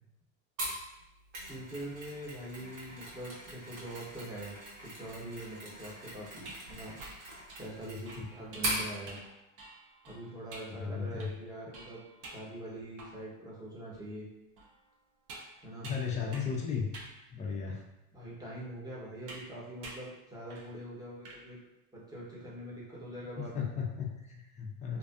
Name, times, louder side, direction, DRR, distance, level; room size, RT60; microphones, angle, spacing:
Mechanisms, 0.6-8.9, right 1 dB, 80° right, 1.3 m, -41 dB
voice 1, 1.5-4.5 4.8-6.9 7.2-9.2 10.1-14.3 15.6-15.9 18.1-21.6 21.9-23.7 24.9-25.0, right 1 dB, 10° right, -6 dB, 0.8 m, -44 dB
sound 1, 6.4-13.4 13.9-14.0 14.6-16.6 16.9-17.2 17.9-18.0 19.3-19.5 19.8-20.1 20.5-20.7 21.0-21.4, right 2 dB, 50° right, 0.7 m, -50 dB
voice 2, 7.9-8.3 10.7-11.3 15.8-16.9 17.3-17.8 23.4-25.0, left 6 dB, 20° left, 0 dB, 0.4 m, -36 dB
2.6 x 2.4 x 2.3 m, 0.92 s
supercardioid pair, 100°, 41 cm